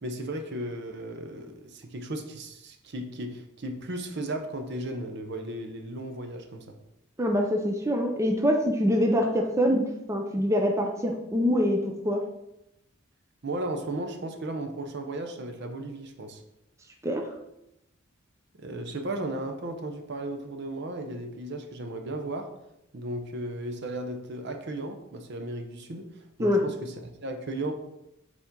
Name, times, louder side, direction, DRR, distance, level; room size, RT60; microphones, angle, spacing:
voice 1, 0.0-6.8 13.4-16.4 18.6-22.5 22.9-27.7, right 1 dB, 55° right, 5 dB, 0.7 m, -35 dB
voice 2, 7.2-9.8 10.1-12.2 17.0-17.3 26.4-26.6, equal, 15° right, 2 dB, 0.6 m, -24 dB
7.1 x 4.2 x 3.8 m, 0.87 s
head